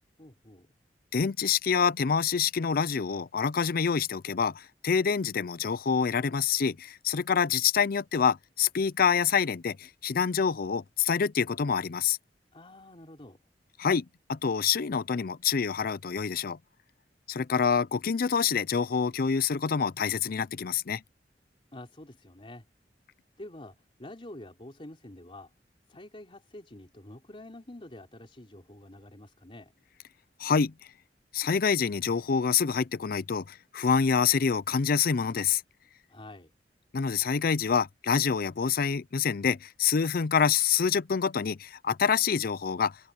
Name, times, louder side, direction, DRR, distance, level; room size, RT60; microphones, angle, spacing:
voice 1, 0.2-0.7 12.5-13.4 21.7-22.6 23.4-25.5 25.9-29.7 36.1-36.5, left 1 dB, 30° left, 3.7 m, -47 dB
voice 2, 1.1-12.2 13.8-16.6 17.3-21.0 30.4-30.7 31.3-35.6 36.9-43.0, left 6 dB, 55° left, 0.5 m, -26 dB
head